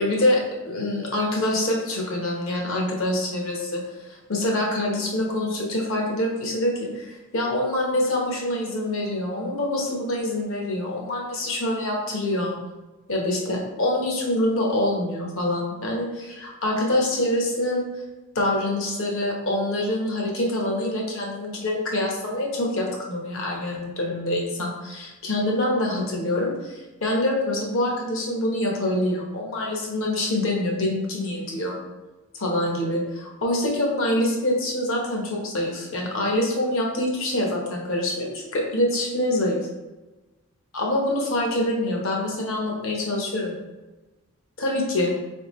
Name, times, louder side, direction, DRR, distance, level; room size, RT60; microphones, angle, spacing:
voice 1, 0.0-12.5 13.1-17.9 18.3-31.8 32.3-39.7 40.7-43.6 44.6-45.1, left 1 dB, 65° left, -1 dB, 1.0 m, -25 dB
4.2 x 3.5 x 3.1 m, 1.1 s
head